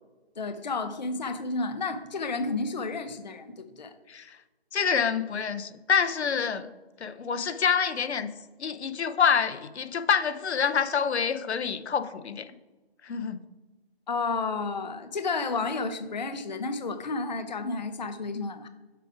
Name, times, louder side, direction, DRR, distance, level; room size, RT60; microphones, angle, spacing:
voice 1, 0.4-3.9 14.1-18.7, left 3 dB, 45° left, 9 dB, 0.5 m, -31 dB
voice 2, 4.7-6.7 7.0-8.3 8.6-12.5 13.0-13.4, left 6 dB, 90° left, 11 dB, 0.7 m, -27 dB
6.8 x 4.8 x 4.8 m, 1.2 s
hypercardioid pair, 175°, 32 cm